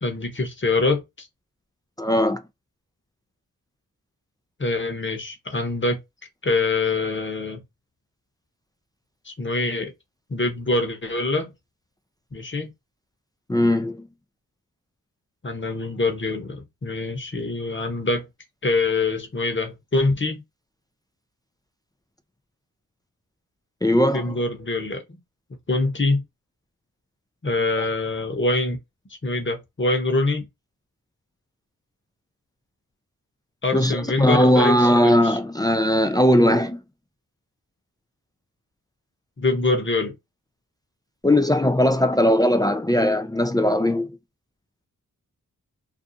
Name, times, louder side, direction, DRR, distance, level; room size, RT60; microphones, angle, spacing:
voice 1, 0.0-1.3 4.6-6.0 6.4-7.6 9.3-9.9 10.3-11.5 12.3-12.7 15.4-18.3 18.6-20.4 24.1-25.2 25.7-26.2 27.4-28.8 29.2-30.5 33.6-35.4 39.4-40.1, left 3 dB, 35° left, 0.9 m, -24 dB
voice 2, 2.0-2.4 13.5-14.1 23.8-24.4 27.8-27.9 33.7-36.8 41.2-44.1, left 1 dB, 10° left, 0.3 m, -19 dB
2.5 x 2.3 x 2.6 m
wide cardioid pair, 65°, 35 cm